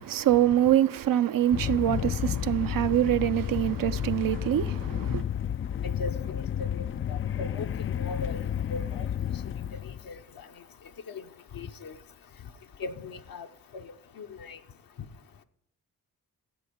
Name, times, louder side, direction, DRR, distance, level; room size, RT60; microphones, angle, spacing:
voice 1, 0.1-5.2, right 12 dB, 65° right, 0.6 m, -25 dB
sound 1, 1.5-10.1, left 9 dB, 35° left, 0.4 m, -31 dB
voice 2, 5.8-7.7 8.0-8.4 8.7-9.1 10.1-10.2 11.1-11.2 11.5-11.9 12.8-13.5 13.7-13.8 14.2-14.6, left 4 dB, 65° left, 1.0 m, -38 dB
15.0 x 7.7 x 5.2 m
supercardioid pair, 50°, 37 cm